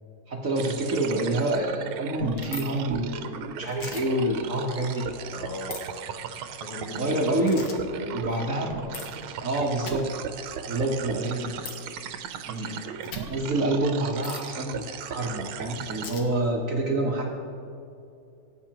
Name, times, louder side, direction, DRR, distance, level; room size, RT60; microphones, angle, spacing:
voice 1, 0.3-5.1 7.0-7.7 8.1-8.8 9.4-10.1 10.7-11.5 12.4-12.8 13.3-17.3, right 1 dB, 45° right, 0 dB, 1.3 m, -27 dB
sound 1, 0.6-16.1, right 7 dB, 80° right, 1.5 m, -37 dB
sound 2, 2.3-2.7 3.7-4.0 5.7-5.8 7.5-7.8 8.9-9.1 9.8-10.0 11.6-11.7 13.0-13.2 14.2-14.4 16.0-16.2, left 5 dB, 65° left, 1.9 m, -38 dB
voice 2, 5.3-5.8 6.6-8.4 8.7-9.0, left 1 dB, 40° left, -3 dB, 1.3 m, -38 dB
18.5 x 9.6 x 3.0 m, 2.6 s
omnidirectional pair, 2.3 m